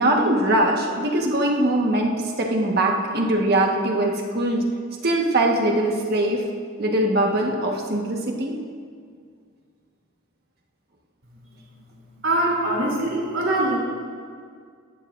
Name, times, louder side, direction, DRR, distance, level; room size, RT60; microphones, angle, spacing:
voice 1, 0.0-2.1 2.4-4.6 5.0-6.4 6.8-8.6, right 1 dB, 45° right, 0 dB, 1.5 m, -21 dB
voice 2, 12.2-13.8, right 1 dB, 65° right, -3 dB, 3.2 m, -22 dB
17.5 x 12.5 x 2.6 m, 2.1 s
head